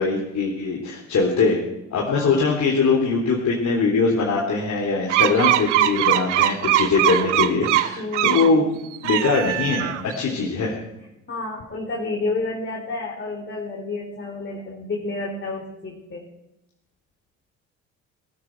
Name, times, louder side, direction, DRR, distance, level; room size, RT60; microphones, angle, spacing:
voice 1, 0.0-1.6 1.9-8.8 9.0-10.7, left 4 dB, 50° left, -2 dB, 3.4 m, -22 dB
voice 2, 2.0-2.5 7.9-8.5 10.3-10.4 11.3-16.2, left 3 dB, 35° left, -1 dB, 3.8 m, -30 dB
sound 1, 5.1-8.5 8.9-10.2, right 14 dB, 85° right, 0.7 m, -21 dB
18.5 x 13.0 x 4.6 m, 0.91 s
hypercardioid pair, 55°, 35 cm